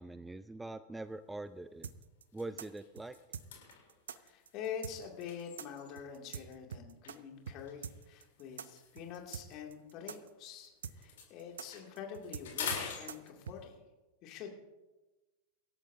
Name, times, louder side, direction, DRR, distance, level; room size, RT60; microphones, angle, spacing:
voice 1, 0.0-1.9 2.3-3.2, right 2 dB, 5° right, 14 dB, 0.4 m, -43 dB
sound 1, 1.1-1.3 1.8-1.9 2.2-6.2 7.0-10.6 10.9-13.7, left 7 dB, 55° left, 3.5 m, -46 dB
sound 2, 1.8-7.2 7.5-7.6 7.8-13.6, right 7 dB, 65° right, 0.6 m, -45 dB
voice 2, 4.2-13.8 14.2-14.5, left 7 dB, 40° left, 2 dB, 2.5 m, -46 dB
25.0 x 13.0 x 2.7 m, 1.1 s
figure-of-eight pair, 90°, 0 cm